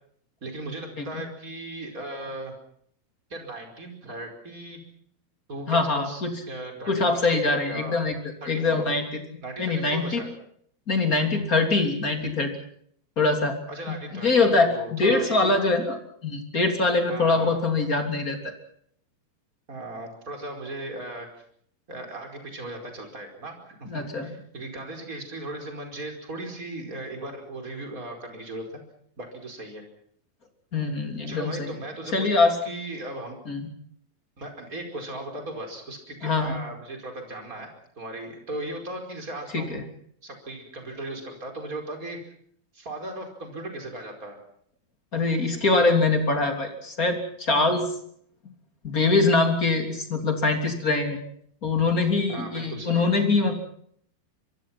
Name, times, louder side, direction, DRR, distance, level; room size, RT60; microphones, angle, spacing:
voice 1, 0.4-2.5 3.3-4.8 5.5-6.2 6.5-8.0 8.4-8.9 9.4-10.3 13.7-15.6 17.1-17.6 19.7-21.4 21.9-28.8 29.2-29.8 31.3-33.4 34.4-39.8 40.2-42.2 42.7-44.4 52.3-53.1, right 2 dB, 20° right, 4 dB, 5.0 m, -37 dB
voice 2, 5.7-6.3 6.9-8.2 8.5-9.1 9.6-10.2 10.9-12.5 13.2-13.6 13.9-16.0 16.2-18.4 23.9-24.3 30.7-31.7 32.1-32.5 33.4-33.7 36.2-36.6 39.5-39.8 45.1-47.9 48.8-51.2 51.6-53.5, left 3 dB, 25° left, 5 dB, 3.1 m, -23 dB
25.5 x 23.0 x 5.9 m, 0.65 s
omnidirectional pair, 4.5 m